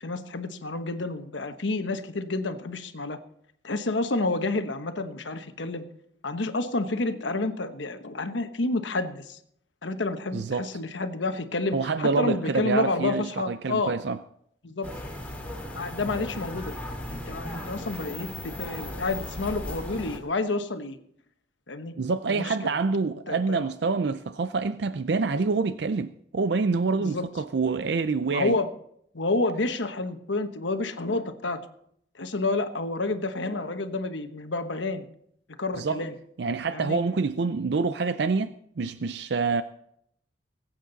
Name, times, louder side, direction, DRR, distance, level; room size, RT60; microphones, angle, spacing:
voice 1, 0.0-3.2 3.6-5.9 6.2-9.4 9.8-13.9 14.6-14.9 15.7-16.7 17.1-21.0 21.7-21.9 22.3-22.6 23.3-23.6 27.0-27.3 28.3-28.7 29.1-31.6 32.2-35.1 35.6-36.1 36.7-37.0, left 2 dB, 90° left, 1.2 m, -29 dB
voice 2, 10.3-10.7 11.7-14.2 22.0-28.6 35.8-36.0 36.4-39.6, right 4 dB, 70° right, 0.5 m, -27 dB
sound 1, 14.8-20.2, left 1 dB, 10° left, 2.1 m, -37 dB
21.0 x 8.7 x 4.0 m
head